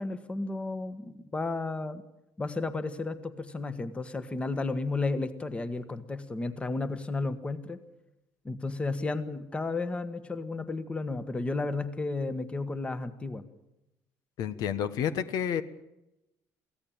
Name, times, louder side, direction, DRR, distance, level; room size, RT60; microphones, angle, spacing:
voice 1, 0.0-2.0 2.4-7.8 8.4-13.4, left 3 dB, 15° left, 12 dB, 1.4 m, -33 dB
voice 2, 14.4-15.6, left 8 dB, 70° left, 12 dB, 1.3 m, -30 dB
23.0 x 16.5 x 8.8 m, 0.90 s
cardioid pair, 140°, 7 cm